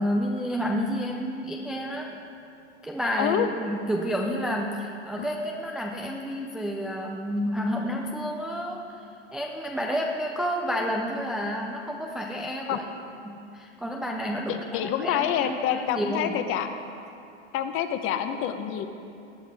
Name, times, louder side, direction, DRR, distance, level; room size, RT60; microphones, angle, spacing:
voice 1, 0.0-2.2 2.8-8.8 9.3-12.8 13.2-16.4, equal, ahead, -1 dB, 0.3 m, -30 dB
voice 2, 3.2-3.5 5.2-5.3 12.7-12.8 14.5-16.7 17.5-18.9, left 9 dB, 35° left, 8 dB, 0.8 m, -27 dB
17.5 x 9.6 x 3.5 m, 2.7 s
hypercardioid pair, 120°, 37 cm